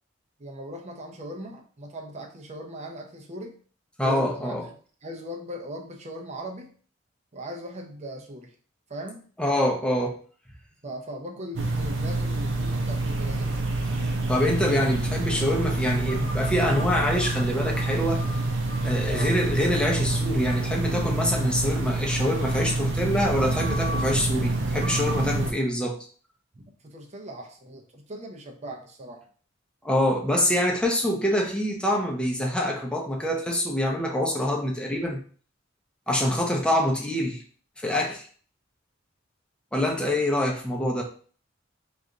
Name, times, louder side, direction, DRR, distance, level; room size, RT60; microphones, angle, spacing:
voice 1, 0.4-3.5 4.0-4.7 5.0-6.7 7.3-8.5 8.9-9.2 10.8-13.5 19.0-19.3 26.5-29.2, right 1 dB, 35° right, 3 dB, 0.7 m, -39 dB
voice 2, 4.0-4.6 9.4-10.2 13.9-18.2 18.8-26.0 29.8-35.2 36.1-37.4 37.8-38.3 39.7-41.0, left 1 dB, 5° left, 0 dB, 0.7 m, -25 dB
sound 1, 11.6-25.5, right 2 dB, 75° right, 0.6 m, -27 dB
3.3 x 2.5 x 3.7 m, 0.43 s
head